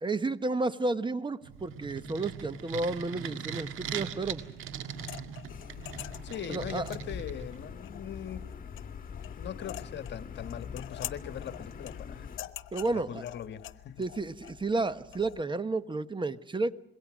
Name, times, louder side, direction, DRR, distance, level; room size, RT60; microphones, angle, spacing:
voice 1, 0.0-4.4 6.5-6.9 12.7-13.2 14.0-16.8, right 3 dB, 25° right, 13 dB, 1.1 m, -31 dB
sound 1, 1.4-7.7, right 7 dB, 90° right, 1.8 m, -40 dB
sound 2, 4.9-15.4, left 14 dB, 85° left, 1.1 m, -46 dB
sound 3, 5.5-12.4, left 6 dB, 45° left, 2.0 m, -43 dB
voice 2, 6.2-8.5 9.4-12.3 12.9-14.0, left 9 dB, 60° left, 10 dB, 1.5 m, -40 dB
26.5 x 22.5 x 6.3 m, 0.79 s
cardioid pair, 90°, 20 cm